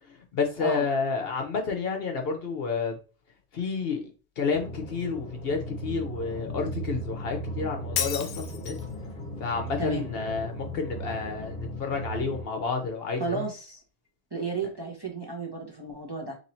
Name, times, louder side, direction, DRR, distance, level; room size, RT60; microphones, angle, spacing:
voice 1, 0.1-3.0 3.5-4.0 4.4-8.8 9.4-13.5, left 5 dB, 55° left, 4 dB, 0.8 m, -30 dB
sound 1, 4.5-12.4, right 1 dB, 30° left, 1.3 m, -37 dB
Shatter, 8.0-8.9, left 8 dB, 85° left, 0.9 m, -31 dB
voice 2, 13.2-13.8 14.3-16.4, right 3 dB, 25° right, -1 dB, 0.7 m, -33 dB
3.0 x 2.7 x 4.2 m, 0.34 s
omnidirectional pair, 1.3 m